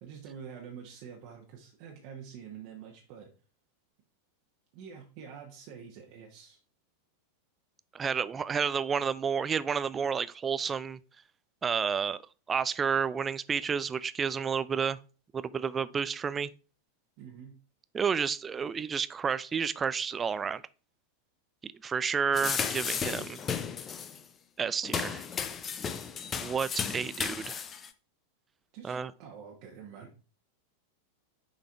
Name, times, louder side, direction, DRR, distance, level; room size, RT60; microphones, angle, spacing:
voice 1, 0.0-3.3 4.7-6.6 17.2-17.6 28.7-30.1, right 7 dB, 45° right, 1.2 m, -47 dB
voice 2, 7.9-11.0 11.6-12.2 12.5-15.0 15.3-16.5 17.9-20.6 21.6-23.4 24.6-25.3 26.4-27.6 28.8-29.1, right 6 dB, 20° right, 0.4 m, -30 dB
sound 1, 22.3-24.2 24.8-27.9, left 6 dB, 25° left, 0.6 m, -34 dB
6.6 x 4.0 x 4.6 m
figure-of-eight pair, 90°, 0 cm